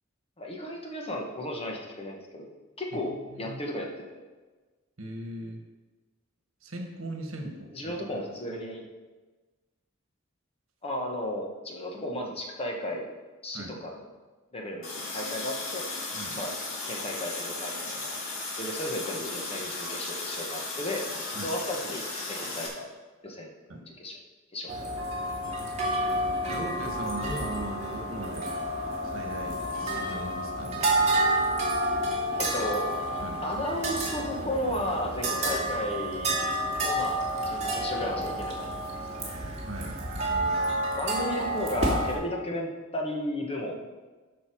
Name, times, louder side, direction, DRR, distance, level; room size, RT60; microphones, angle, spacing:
voice 1, 0.4-2.5 2.8-4.2 7.7-8.8 10.8-13.1 13.4-14.0 14.5-15.8 16.3-16.5 16.8-18.2 18.6-21.0 21.4-22.0 22.3-22.9 23.2-23.5 23.9-24.2 24.5-24.9 25.8-25.9 32.4-32.9 33.4-36.5 36.8-38.7 39.2-39.5 41.0-43.9, left 1 dB, 30° left, 1 dB, 1.4 m, -34 dB
voice 2, 3.1-3.6 5.0-5.6 6.6-7.9 13.5-13.8 16.1-16.4 21.3-21.5 23.7-23.8 26.5-28.5 29.0-31.1 33.2-33.4 39.6-40.0 40.3-40.4, right 1 dB, 70° right, 3 dB, 1.5 m, -39 dB
Water tap faucet, 14.8-22.7, left 2 dB, 75° left, 2.3 m, -35 dB
sound 1, 24.7-42.1, right 1 dB, 35° right, 2.4 m, -29 dB
13.0 x 5.4 x 4.7 m, 1.3 s
head